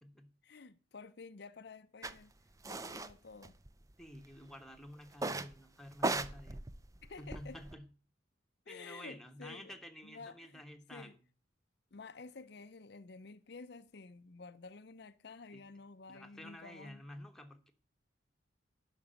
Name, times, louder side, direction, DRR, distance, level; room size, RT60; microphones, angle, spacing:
voice 1, 0.4-2.3 2.6-3.5 7.0-7.6 8.7-9.7 10.0-10.6 10.9-11.2 11.9-17.0, left 4 dB, 55° left, 0.6 m, -51 dB
sound 1, 2.0-2.1 2.6-3.1 3.4-4.2 5.1-5.6 5.9-7.7, right 2 dB, 15° right, 0.5 m, -37 dB
voice 2, 4.0-6.6 7.2-7.9 8.7-11.2 15.5-15.6 16.1-17.7, left 1 dB, ahead, 1.1 m, -51 dB
10.5 x 6.1 x 8.9 m
head